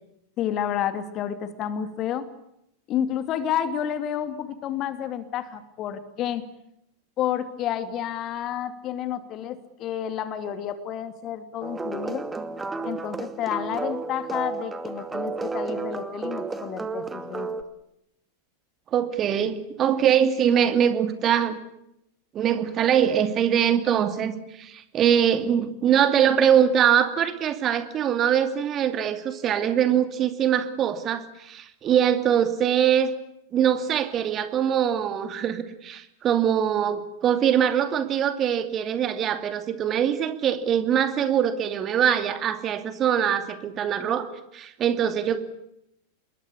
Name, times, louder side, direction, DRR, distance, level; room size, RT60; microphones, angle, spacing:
voice 1, 0.4-2.3 2.9-6.4 7.2-12.3 12.8-17.5, left 9 dB, 35° left, 11 dB, 2.6 m, -30 dB
sound 1, 11.6-17.6, right 4 dB, 10° right, 2.4 m, -32 dB
voice 2, 18.9-21.6 22.3-33.1 33.5-44.3 44.5-45.4, right 9 dB, 30° right, 10 dB, 2.6 m, -23 dB
27.5 x 22.0 x 8.6 m, 0.80 s
figure-of-eight pair, 90°, 0 cm